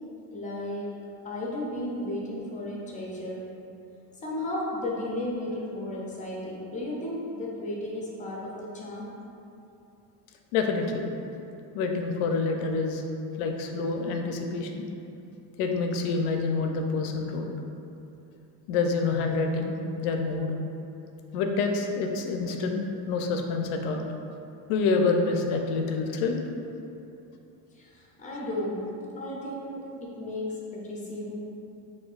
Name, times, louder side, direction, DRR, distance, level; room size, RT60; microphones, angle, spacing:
voice 1, 0.3-1.0 1.2-3.5 4.2-9.2 27.7-31.4, left 1 dB, 20° left, -4 dB, 0.4 m, -34 dB
voice 2, 10.5-11.1 11.7-13.0 13.4-14.9 15.6-17.5 18.7-20.5 21.3-24.1 24.7-26.4, left 4 dB, 80° left, 4 dB, 0.6 m, -27 dB
4.4 x 2.6 x 2.4 m, 2.8 s
cardioid pair, 135°, 46 cm